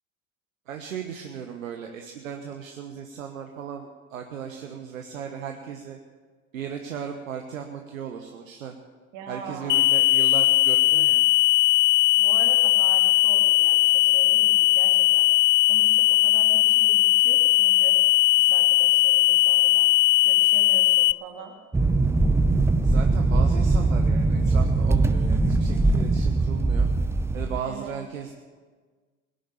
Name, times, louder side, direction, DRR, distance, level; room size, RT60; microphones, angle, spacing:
voice 1, 0.7-6.0 6.5-8.7 9.3-11.2 22.8-26.9 27.3-28.3, right 7 dB, 70° right, 5 dB, 1.2 m, -36 dB
voice 2, 9.1-9.9 12.2-15.3 15.7-18.0 18.3-19.9 20.2-21.5 27.6-28.0, right 6 dB, 50° right, 3 dB, 2.7 m, -41 dB
sound 1, 9.7-21.1, left 19 dB, 60° left, 0.6 m, -19 dB
sound 2, 21.7-27.6, right 3 dB, 5° right, 0.6 m, -21 dB
19.0 x 11.0 x 6.9 m, 1.5 s
figure-of-eight pair, 75°, 41 cm